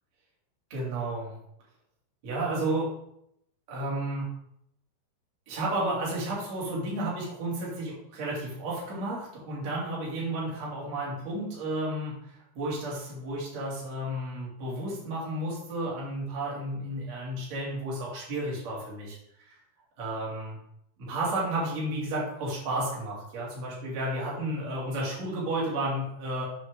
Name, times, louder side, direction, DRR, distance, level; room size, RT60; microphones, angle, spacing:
voice 1, 0.7-1.3 2.2-2.9 3.7-4.3 5.5-19.2 19.5-19.6 20.0-20.6 21.0-26.4, right 1 dB, 40° right, -6 dB, 3.2 m, -32 dB
7.8 x 6.8 x 3.8 m, 0.75 s
omnidirectional pair, 6.0 m